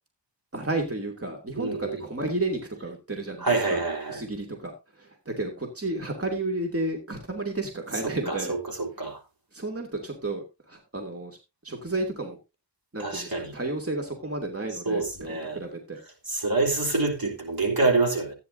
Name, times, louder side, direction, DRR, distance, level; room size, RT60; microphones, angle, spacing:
voice 1, 0.5-3.8 4.1-8.6 9.0-9.1 9.5-11.4 11.6-12.4 12.9-16.0, right 2 dB, 35° right, 2.7 m, -32 dB
voice 2, 1.6-2.0 3.4-4.2 8.3-9.2 13.0-13.5 14.9-15.6 16.3-18.3, right 3 dB, 55° right, 3.5 m, -26 dB
14.5 x 9.9 x 2.7 m
wide cardioid pair, 45°, 42 cm